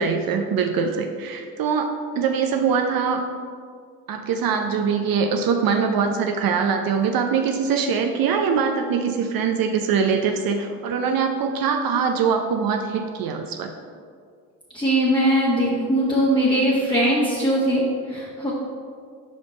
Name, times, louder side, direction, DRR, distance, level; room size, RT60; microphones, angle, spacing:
voice 1, 0.0-3.2 4.1-13.7, right 6 dB, 55° right, 4 dB, 0.6 m, -23 dB
voice 2, 14.7-18.5, equal, 10° left, -7 dB, 1.2 m, -20 dB
5.2 x 5.1 x 4.0 m, 2.1 s
hypercardioid pair, 60°, 42 cm